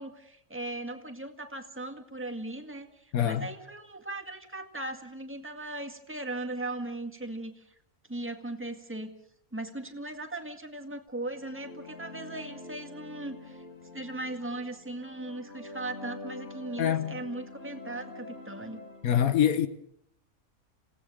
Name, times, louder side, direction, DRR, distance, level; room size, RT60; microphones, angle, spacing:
voice 1, 0.0-7.7 8.1-9.2 9.5-13.6 13.9-18.8, right 2 dB, 10° right, 1.9 m, -38 dB
voice 2, 3.1-3.5 16.8-17.2 19.0-19.7, left 9 dB, 85° left, 1.5 m, -25 dB
sound 1, 11.2-19.1, left 2 dB, 50° left, 3.0 m, -46 dB
28.0 x 18.0 x 6.4 m
omnidirectional pair, 1.5 m